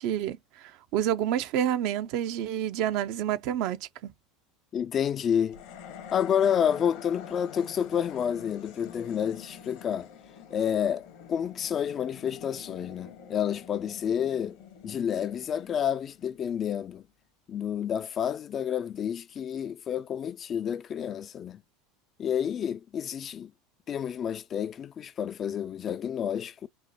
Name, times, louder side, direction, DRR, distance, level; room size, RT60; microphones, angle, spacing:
voice 1, 0.0-4.1, right 10 dB, 60° right, 0.5 m, -29 dB
voice 2, 4.7-5.6 6.1-10.1 10.5-14.6 14.8-17.0 17.5-21.6 22.2-23.5 23.9-26.7, left 8 dB, 40° left, 0.3 m, -29 dB
sound 1, 5.5-16.9, left 8 dB, 70° left, 1.0 m, -47 dB
5.4 x 2.1 x 2.8 m
hypercardioid pair, 85°, 0 cm